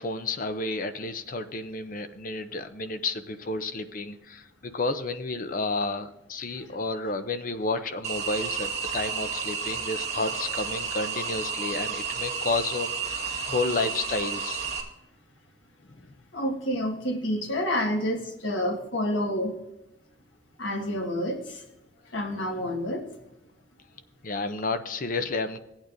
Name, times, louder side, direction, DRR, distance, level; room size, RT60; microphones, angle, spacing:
voice 1, 0.0-14.6 16.0-16.1 24.2-25.6, left 3 dB, 45° left, 10 dB, 0.6 m, -31 dB
sound 1, 8.0-14.8, right 6 dB, 35° right, 1.7 m, -32 dB
voice 2, 16.3-19.5 20.6-21.6 22.1-23.0, equal, 75° left, 2 dB, 1.5 m, -28 dB
16.5 x 8.8 x 2.6 m, 0.89 s
head